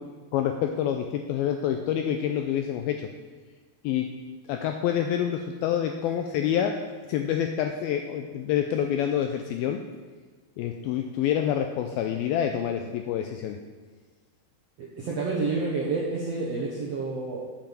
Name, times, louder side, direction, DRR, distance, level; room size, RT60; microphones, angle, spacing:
voice 1, 0.3-3.1 3.8-4.1 4.5-6.7 7.1-9.8 10.6-13.6, left 9 dB, 85° left, 5 dB, 2.1 m, -27 dB
voice 2, 14.8-17.4, right 3 dB, 70° right, -4 dB, 1.5 m, -29 dB
8.8 x 8.1 x 7.4 m, 1.5 s
omnidirectional pair, 4.9 m